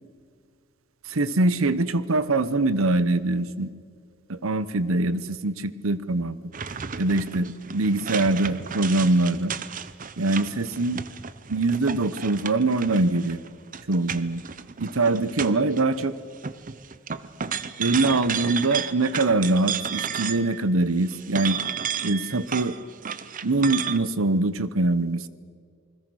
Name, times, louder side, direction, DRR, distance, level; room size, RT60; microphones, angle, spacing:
voice 1, 1.1-3.7 4.3-6.5 7.0-9.5 10.2-11.0 11.5-13.4 13.9-14.4 14.8-16.1 17.8-21.6 22.0-22.8 23.4-25.3, right 2 dB, 80° right, 15 dB, 1.0 m, -23 dB
sound 1, 6.5-16.1 16.3-20.6 21.0-24.0, right 7 dB, 40° right, 0.7 m, -33 dB
28.0 x 20.5 x 6.3 m, 2.1 s
head